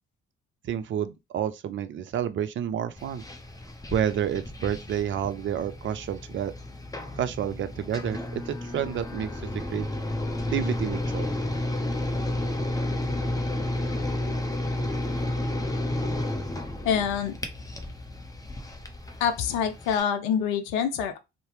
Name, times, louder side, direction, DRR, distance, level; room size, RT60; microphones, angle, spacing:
voice 1, 0.6-3.2 3.9-6.5 7.2-9.9 10.5-11.3, right 9 dB, 40° right, 0.5 m, -29 dB
sound 1, 3.0-20.0, left 1 dB, 10° left, 0.7 m, -32 dB
voice 2, 16.8-17.3 19.2-21.2, left 8 dB, 70° left, 0.6 m, -26 dB
2.7 x 2.0 x 3.1 m
figure-of-eight pair, 50°, 31 cm